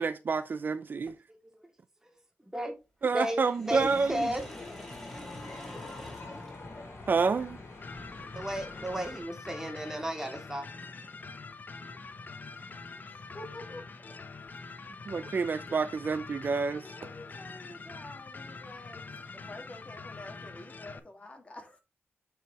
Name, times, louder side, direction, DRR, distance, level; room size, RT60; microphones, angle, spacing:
voice 1, 0.0-1.2 3.0-4.3 7.1-7.6 15.1-16.9, right 4 dB, 45° right, 0.4 m, -28 dB
voice 2, 1.3-1.7 2.0-2.1 2.5-2.7 3.1-4.4 8.3-10.7, equal, 10° right, 2.3 m, -34 dB
Sink (filling or washing), 3.3-7.2, left 1 dB, 10° left, 3.1 m, -47 dB
sound 1, 3.7-9.2, left 2 dB, 65° left, 3.2 m, -45 dB
sound 2, 7.8-21.0, left 4 dB, 40° left, 0.8 m, -45 dB
voice 3, 13.1-14.1 15.1-15.4 16.7-21.8, left 2 dB, 25° left, 2.0 m, -48 dB
9.1 x 4.8 x 3.0 m
wide cardioid pair, 110°, 4 cm